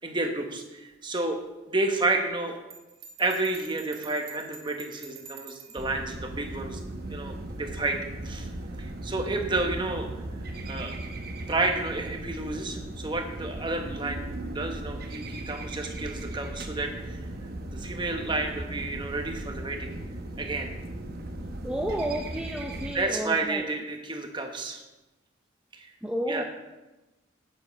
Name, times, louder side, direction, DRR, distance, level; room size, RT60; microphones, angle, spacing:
voice 1, 0.0-2.6 3.2-6.8 7.1-8.0 8.2-8.5 8.8-10.1 10.6-11.0 11.5-17.2 17.6-19.9 20.4-20.7 22.9-24.8 25.7-25.9 26.3-26.4, right 2 dB, 25° right, 4 dB, 1.0 m, -30 dB
Bell, 2.7-5.9, right 7 dB, 80° right, 2.0 m, -47 dB
sound 1, 5.8-23.0, right 1 dB, 50° right, 0.9 m, -37 dB
voice 2, 21.6-23.6 26.0-26.4, right 1 dB, 5° right, 0 dB, 0.5 m, -31 dB
8.8 x 7.4 x 5.2 m, 1.1 s
head